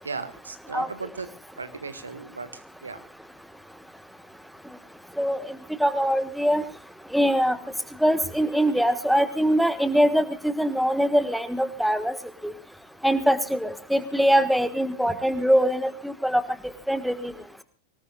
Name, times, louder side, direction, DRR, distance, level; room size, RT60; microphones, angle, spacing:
voice 1, 0.0-1.3 1.6-2.5 2.8-3.0, right 4 dB, 75° right, 10 dB, 1.6 m, -36 dB
voice 2, 5.2-6.6 7.1-7.6 8.0-12.2 12.4-12.5 13.0-16.4 16.9-17.3, equal, ahead, 11 dB, 1.4 m, -23 dB
25.0 x 18.0 x 2.4 m, 0.33 s
figure-of-eight pair, 90°, 0 cm